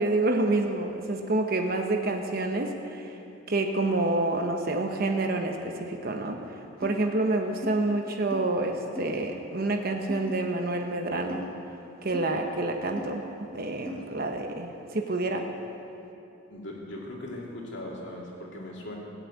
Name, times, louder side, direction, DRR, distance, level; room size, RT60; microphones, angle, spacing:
voice 1, 0.0-3.2 3.5-6.4 6.8-11.5 12.0-15.5, right 2 dB, 45° right, 3 dB, 1.0 m, -28 dB
sound 1, 6.8-7.0 7.6-7.7 8.3-8.4 9.0-9.2 10.1-10.3 11.3-11.5 12.1-12.3 13.0-13.1 13.9-14.0, left 1 dB, 5° left, 1.8 m, -38 dB
voice 2, 16.5-19.0, left 1 dB, 60° left, -2 dB, 2.7 m, -39 dB
17.5 x 8.1 x 8.5 m, 2.9 s
head